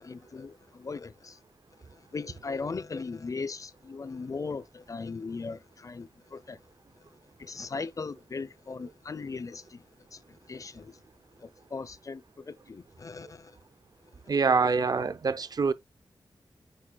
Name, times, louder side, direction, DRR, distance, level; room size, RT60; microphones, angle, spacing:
voice 1, 0.0-1.4 1.8-6.6 7.4-9.8 10.1-11.0 11.4-13.6, left 4 dB, 40° left, 0.5 m, -38 dB
voice 2, 14.3-15.7, right 4 dB, 50° right, 0.5 m, -25 dB
8.9 x 4.6 x 2.3 m
wide cardioid pair, 100°, 9 cm